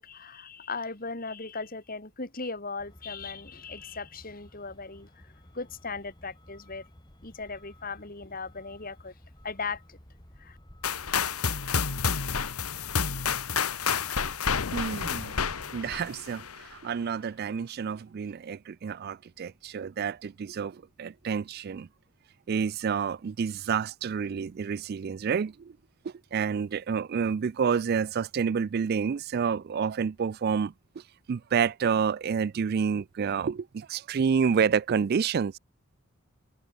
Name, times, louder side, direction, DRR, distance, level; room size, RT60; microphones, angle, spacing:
voice 1, 0.0-6.8 7.2-9.1 9.4-10.0 10.4-10.6, left 4 dB, 40° left, 2.6 m, -38 dB
Truck, 2.8-16.2, left 1 dB, 20° left, 2.7 m, -54 dB
sound 1, 10.8-16.7, left 6 dB, 90° left, 1.6 m, -30 dB
sound 2, 14.4-16.6, left 4 dB, 65° left, 0.6 m, -40 dB
voice 2, 14.7-21.9 22.5-25.8 26.0-30.7 31.3-35.6, right 6 dB, 45° right, 0.3 m, -29 dB
head